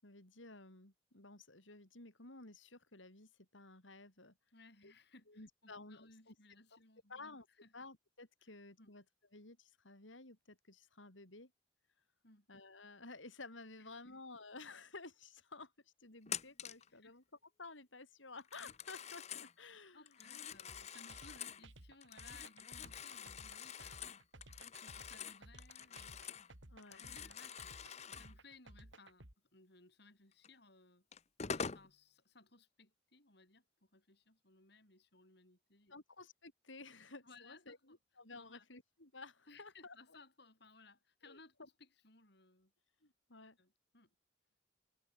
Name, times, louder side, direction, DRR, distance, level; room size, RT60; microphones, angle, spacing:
voice 1, 0.0-4.3 4.8-4.9 5.3-6.3 6.7-6.8 7.1-7.5 7.7-9.0 9.3-11.5 12.5-17.2 17.6-20.1 26.7-27.1 35.9-40.2 41.3-41.7 43.0-43.6, left 3 dB, 80° left, 5.3 m, -54 dB
voice 2, 4.5-7.3 7.6-7.7 8.4-8.5 8.8-8.9 12.2-12.5 13.8-14.2 16.9-17.1 19.9-24.2 24.7-26.3 27.0-31.1 31.4-36.0 37.2-38.0 38.4-38.7 39.5-42.7 43.6-44.1, left 3 dB, 60° left, 6.5 m, -63 dB
Telephone, 16.3-16.9 18.4-19.5 20.1-21.6 22.0-26.5 26.8-28.3 30.4-30.5 31.1-31.9, left 7 dB, 35° left, 0.8 m, -46 dB
sound 1, 20.7-29.3, right 1 dB, 75° right, 3.7 m, -57 dB
head